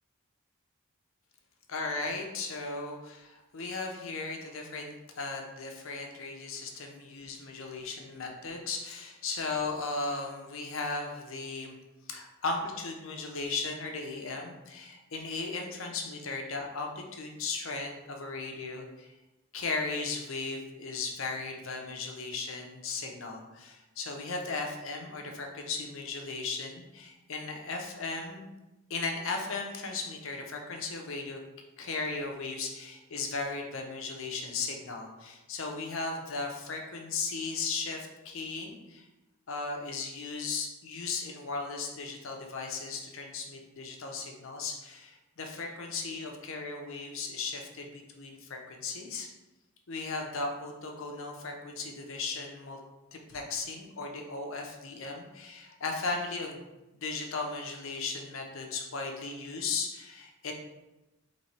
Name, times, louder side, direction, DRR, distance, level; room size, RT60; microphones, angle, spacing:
voice 1, 1.7-11.8 12.1-19.1 19.5-28.4 28.9-31.4 31.8-39.1 39.5-49.3 49.9-52.8 53.1-56.6 57.0-60.5, left 3 dB, 60° left, 2 dB, 0.6 m, -36 dB
3.1 x 3.0 x 4.2 m, 1.0 s
head